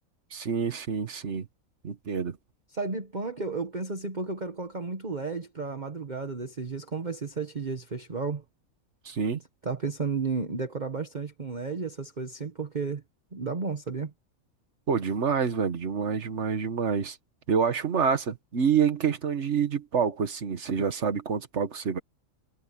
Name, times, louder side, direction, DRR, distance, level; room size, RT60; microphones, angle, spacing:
voice 1, 0.3-1.5 1.8-2.4 9.0-9.4 14.9-17.2 17.5-22.0, right 6 dB, 55° right, 1.6 m, -27 dB
voice 2, 2.7-8.4 9.6-13.0 13.3-14.1, right 4 dB, 35° right, 1.4 m, -33 dB
omnidirectional pair, 1.5 m